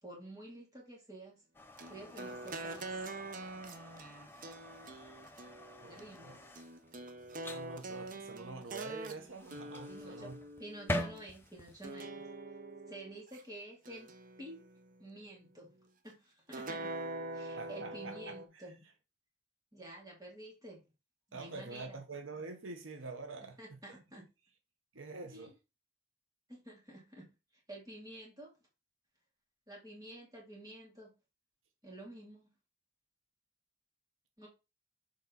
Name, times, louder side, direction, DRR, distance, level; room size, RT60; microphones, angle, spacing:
voice 1, 0.0-1.4 1.9-3.1 5.9-6.4 9.9-10.3 10.6-12.3 12.9-14.1 14.4-14.6 15.0-15.8 16.0-16.9 17.3-18.8 19.7-20.8 21.3-22.0 23.6-24.2 25.3-25.5 26.5-27.3 27.7-28.5 29.7-31.1 31.8-32.5 34.4-34.5, right 1 dB, 20° right, 2.8 m, -50 dB
sound 1, 1.5-11.9, left 1 dB, 10° left, 0.6 m, -45 dB
sound 2, 1.8-11.2 11.8-13.4 13.9-15.0 16.5-18.5, right 2 dB, 40° right, 0.7 m, -45 dB
voice 2, 5.8-6.3 7.4-10.4 17.6-18.7 21.3-23.8 24.9-25.5, right 3 dB, 80° right, 1.0 m, -46 dB
6.8 x 4.6 x 4.0 m
head